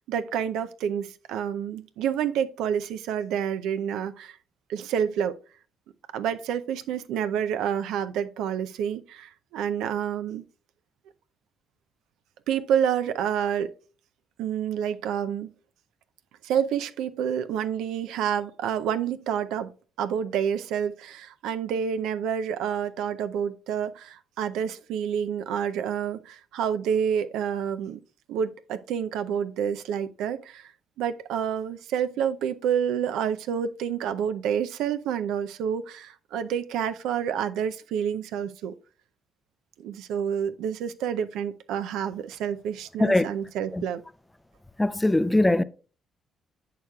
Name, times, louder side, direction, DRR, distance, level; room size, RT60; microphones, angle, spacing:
voice 1, 0.1-4.4 4.7-5.4 6.1-10.4 12.5-13.7 14.4-15.5 16.4-19.7 20.0-28.0 28.3-30.7 31.0-38.7 39.8-44.0, right 8 dB, 75° right, 0.5 m, -28 dB
voice 2, 44.8-45.6, left 1 dB, 15° left, 0.5 m, -21 dB
11.0 x 6.7 x 2.3 m
hypercardioid pair, 50°, 0 cm